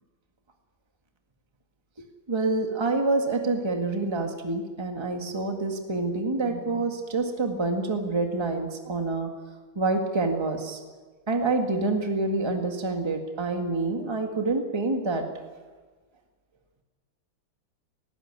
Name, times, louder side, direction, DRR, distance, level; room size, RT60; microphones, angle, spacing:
voice 1, 2.3-9.3 9.8-10.8 11.3-15.3, right 3 dB, 15° right, 4 dB, 1.8 m, -27 dB
19.0 x 15.5 x 9.8 m, 1.4 s
omnidirectional pair, 2.4 m